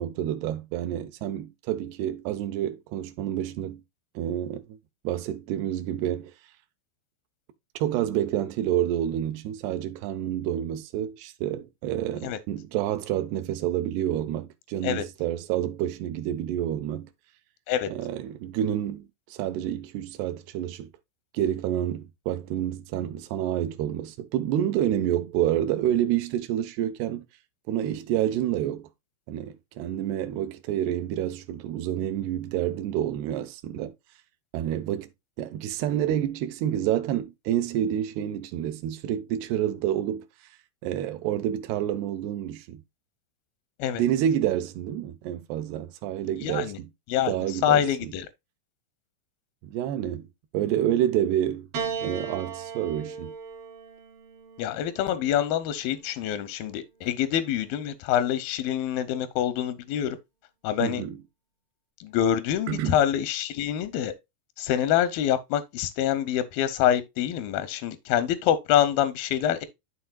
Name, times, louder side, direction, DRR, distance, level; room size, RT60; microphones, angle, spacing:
voice 1, 0.0-3.8 4.2-4.6 5.0-6.3 7.8-17.1 17.9-20.9 21.3-27.2 27.7-28.9 29.3-33.9 34.5-35.1 35.4-40.3 40.8-42.8 44.0-46.9 47.3-48.1 49.6-50.3 50.5-51.7 52.0-53.3 60.8-61.2 62.7-62.9, right 11 dB, 75° right, 2.8 m, -28 dB
voice 2, 46.4-46.8 47.1-47.4 47.6-48.3 54.6-60.2 60.6-61.0 62.0-64.1 64.6-69.6, left 10 dB, 80° left, 2.1 m, -26 dB
Piano, 51.7-56.2 57.2-58.0, right 6 dB, 45° right, 2.0 m, -38 dB
12.5 x 4.3 x 2.2 m
omnidirectional pair, 5.2 m